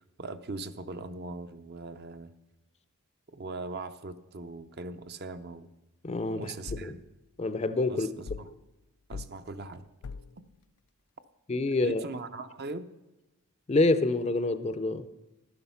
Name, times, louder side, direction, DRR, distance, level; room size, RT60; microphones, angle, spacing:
voice 1, 0.0-2.3 3.3-5.7 6.3-7.0 7.9-8.5 9.1-9.9 11.8-12.9, right 3 dB, 45° right, 0.5 m, -40 dB
voice 2, 6.0-6.5 6.8-7.0 7.4-8.1 11.5-12.0 13.7-15.1, left 2 dB, 30° left, 0.4 m, -27 dB
sound 1, 6.7-7.0 8.3-8.6 9.1-9.4 10.0-10.4, left 4 dB, 85° left, 0.4 m, -40 dB
12.0 x 9.6 x 5.7 m
head